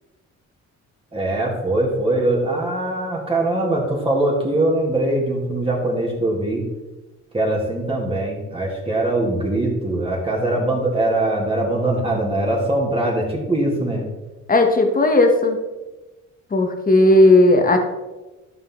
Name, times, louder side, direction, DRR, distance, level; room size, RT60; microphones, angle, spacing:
voice 1, 1.1-6.6 7.3-14.0, right 1 dB, 20° right, -2 dB, 3.0 m, -22 dB
voice 2, 14.5-15.6 16.5-17.8, left 2 dB, 30° left, 5 dB, 1.6 m, -15 dB
12.5 x 5.5 x 4.0 m, 1.1 s
cardioid pair, 90°, 30 cm